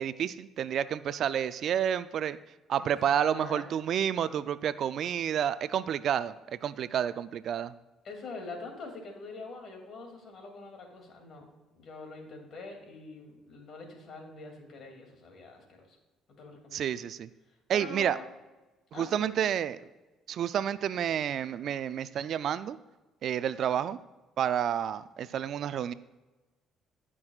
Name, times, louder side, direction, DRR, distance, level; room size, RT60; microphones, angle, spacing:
voice 1, 0.0-2.4 2.7-7.7 16.7-17.3 17.7-18.2 19.0-19.8 20.3-22.8 23.2-24.0 24.4-25.9, right 9 dB, 65° right, 15 dB, 0.3 m, -30 dB
voice 2, 3.2-3.7 4.2-4.4 8.0-11.5 11.7-16.0 16.4-16.9 17.5-18.3 18.9-19.6, left 3 dB, 60° left, 2 dB, 2.5 m, -45 dB
16.0 x 6.1 x 2.4 m, 1.1 s
supercardioid pair, 70°, 0 cm